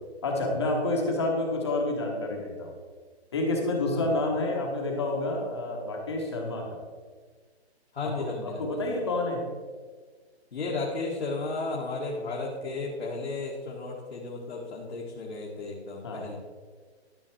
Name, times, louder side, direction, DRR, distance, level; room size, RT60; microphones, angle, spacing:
voice 1, 0.2-2.7 3.3-6.8 8.2-9.4 16.0-16.2, left 2 dB, 25° left, 1 dB, 1.1 m, -29 dB
voice 2, 7.9-8.8 10.5-16.4, left 3 dB, 65° left, -3 dB, 1.7 m, -34 dB
12.0 x 5.9 x 4.4 m, 1.5 s
hypercardioid pair, 175°, 33 cm